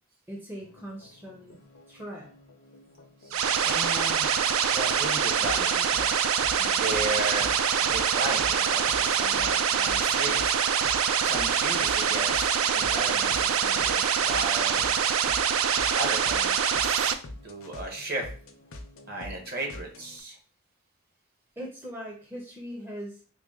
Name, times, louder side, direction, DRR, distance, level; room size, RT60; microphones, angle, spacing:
voice 1, 0.3-1.5 1.9-2.3 6.6-6.9 21.6-23.2, equal, 10° right, -2 dB, 0.5 m, -40 dB
sound 1, 0.6-20.2, left 1 dB, 65° left, 0.5 m, -46 dB
voice 2, 3.2-6.1 6.8-7.5 7.8-10.6 11.2-14.9 15.9-17.2 17.4-18.3 19.1-20.4, right 2 dB, 45° right, 1 dB, 0.9 m, -35 dB
sound 2, 3.3-17.1, right 7 dB, 65° right, 0.3 m, -25 dB
3.8 x 2.1 x 3.6 m, 0.40 s
head